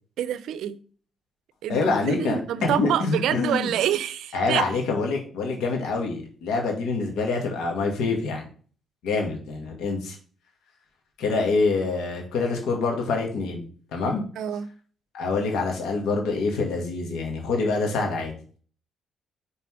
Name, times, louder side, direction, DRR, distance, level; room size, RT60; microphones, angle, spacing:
voice 1, 0.2-0.8 1.6-4.7 14.4-14.7, right 10 dB, 80° right, 0.5 m, -27 dB
voice 2, 1.7-3.7 4.3-8.5 9.0-10.2 11.2-13.7 13.9-14.2 15.1-18.4, left 3 dB, 85° left, 2.0 m, -26 dB
5.9 x 4.1 x 4.8 m
cardioid pair, 90°, 0 cm